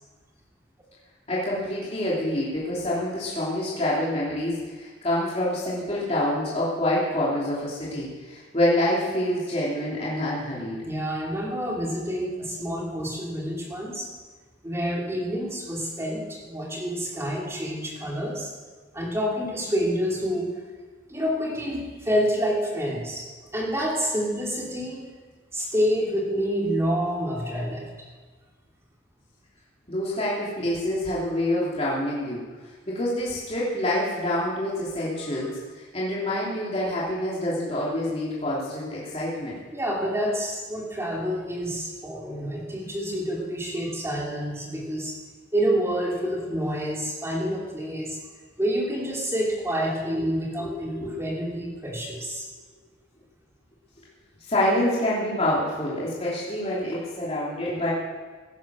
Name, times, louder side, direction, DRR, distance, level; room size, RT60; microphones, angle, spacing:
voice 1, 1.3-10.8 29.9-32.4 32.6-39.6 50.6-51.1 54.5-57.9, left 1 dB, 30° left, -7 dB, 3.1 m, -27 dB
voice 2, 10.8-14.1 14.6-18.5 18.9-20.6 21.1-23.3 23.5-25.1 25.5-27.8 39.7-45.2 45.5-48.2 48.6-52.5, equal, 15° right, -3 dB, 3.0 m, -28 dB
16.5 x 10.5 x 6.3 m, 1.4 s
head